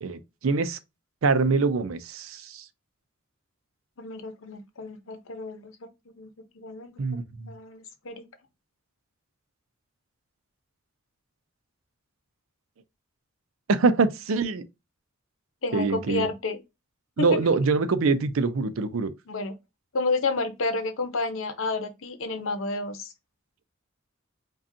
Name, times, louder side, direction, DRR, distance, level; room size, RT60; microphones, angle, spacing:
voice 1, 0.0-0.8 1.2-2.6 7.0-7.5 13.7-14.6 15.7-16.3 17.2-19.1, right 4 dB, 90° right, 0.5 m, -24 dB
voice 2, 4.0-5.9 6.2-7.0 7.5-8.3 15.6-16.6 17.2-17.4 19.3-19.5 19.9-23.1, left 3 dB, 75° left, 0.8 m, -30 dB
5.0 x 2.3 x 2.6 m
head